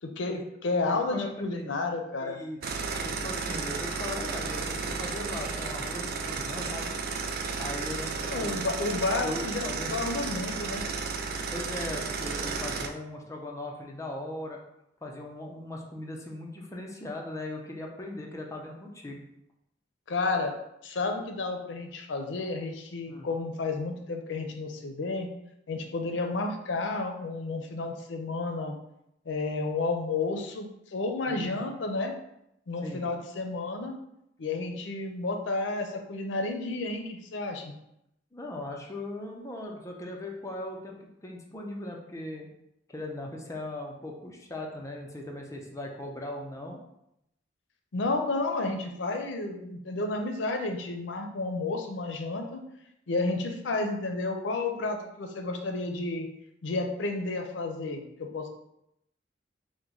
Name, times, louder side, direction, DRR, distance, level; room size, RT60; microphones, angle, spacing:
voice 1, 0.0-2.4 8.2-10.8 20.1-20.5 20.8-25.3 25.7-28.7 29.3-32.1 32.7-34.0 34.4-37.7 47.9-52.6 53.1-56.3 56.6-58.5, left 3 dB, 90° left, 4 dB, 0.5 m, -31 dB
voice 2, 0.9-1.7 2.2-2.6 3.0-6.9 7.6-8.6 9.2-9.9 11.5-14.6 15.0-19.2 23.1-23.3 31.3-31.6 32.8-33.0 38.3-42.5 42.9-46.8, left 1 dB, 15° left, 0 dB, 0.5 m, -39 dB
sound 1, 2.6-12.9, right 4 dB, 55° right, 0.3 m, -33 dB
3.0 x 2.1 x 3.8 m, 0.80 s
head